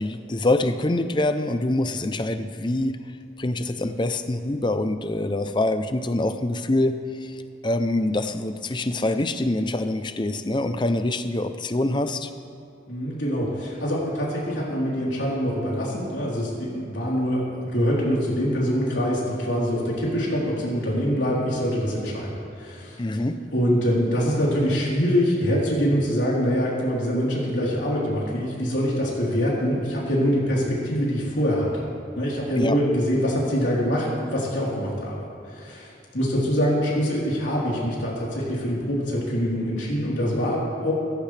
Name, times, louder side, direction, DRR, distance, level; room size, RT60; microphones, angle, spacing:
voice 1, 0.0-3.0 3.4-7.3 7.6-12.3 23.0-23.4 32.6-32.8, left 2 dB, 25° left, 9 dB, 0.6 m, -25 dB
voice 2, 12.9-23.0 23.5-31.9 32.1-40.9, equal, 85° left, -6 dB, 3.9 m, -24 dB
17.0 x 15.0 x 3.4 m, 2.6 s
head